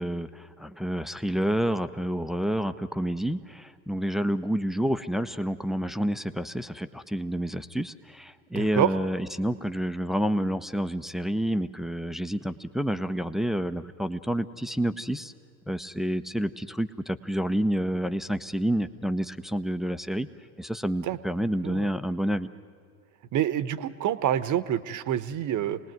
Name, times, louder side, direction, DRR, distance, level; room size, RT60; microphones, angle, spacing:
voice 1, 0.0-15.3 15.7-20.3 20.6-22.5, equal, ahead, 11 dB, 0.6 m, -29 dB
voice 2, 8.5-8.9 21.0-21.2 21.6-21.9 23.3-25.8, right 11 dB, 40° right, 15 dB, 1.1 m, -27 dB
27.5 x 19.5 x 9.3 m, 2.2 s
hypercardioid pair, 75°, 49 cm